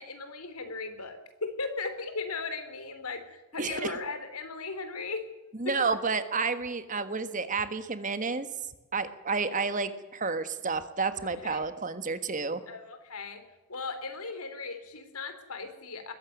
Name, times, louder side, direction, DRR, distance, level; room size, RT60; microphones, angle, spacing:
voice 1, 0.0-5.3 5.6-5.8 11.2-11.7 12.7-13.4 13.7-16.1, left 4 dB, 85° left, 9 dB, 3.5 m, -37 dB
voice 2, 3.6-3.9 5.6-8.5 8.9-12.6, right 4 dB, 35° right, 11 dB, 1.5 m, -30 dB
21.0 x 15.0 x 9.3 m, 1.0 s
head